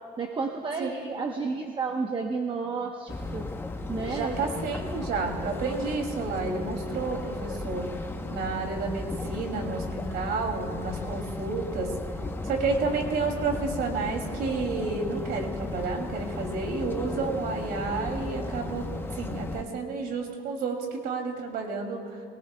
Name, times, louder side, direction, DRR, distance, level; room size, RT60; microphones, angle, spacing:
voice 1, 0.2-3.5 3.9-4.4, right 4 dB, 30° right, 3 dB, 1.0 m, -31 dB
sound 1, 3.1-19.6, left 2 dB, 15° left, 0.9 m, -35 dB
voice 2, 3.9-7.9 8.3-11.9 12.4-18.9 19.1-22.2, right 4 dB, 70° right, 2 dB, 2.7 m, -31 dB
23.0 x 18.0 x 2.3 m, 2.6 s
cardioid pair, 110°, 17 cm